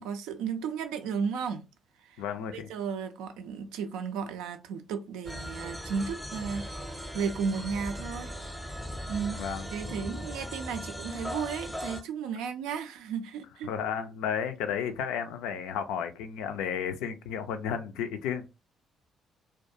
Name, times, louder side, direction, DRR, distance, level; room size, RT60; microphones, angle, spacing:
voice 1, 0.0-1.7 2.0-2.2 2.5-8.3 8.6-8.8 9.1-9.4 9.7-13.7, right 6 dB, 70° right, 0.3 m, -34 dB
voice 2, 2.2-2.7 9.3-9.7 13.6-18.5, left 8 dB, 70° left, 0.3 m, -33 dB
sound 1, 5.3-12.0, equal, 5° left, 0.6 m, -38 dB
2.3 x 2.2 x 2.6 m
figure-of-eight pair, 45°, 0 cm